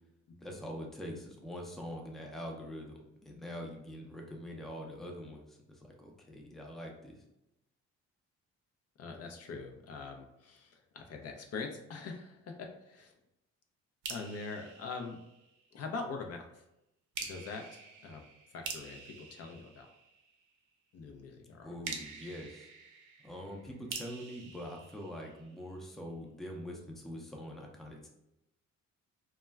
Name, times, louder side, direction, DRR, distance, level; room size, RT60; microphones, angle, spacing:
voice 1, 0.4-7.2 21.6-22.7 23.2-28.1, equal, ahead, 0 dB, 0.4 m, -44 dB
voice 2, 9.0-13.1 14.1-15.2 15.7-16.6 17.2-18.2 18.5-19.9 20.9-21.7, left 4 dB, 55° left, 3 dB, 0.5 m, -43 dB
sound 1, 14.0-15.8 17.1-20.5 21.8-25.7, right 5 dB, 80° right, 0.5 m, -46 dB
2.2 x 2.1 x 3.3 m, 0.86 s
cardioid pair, 90°, 30 cm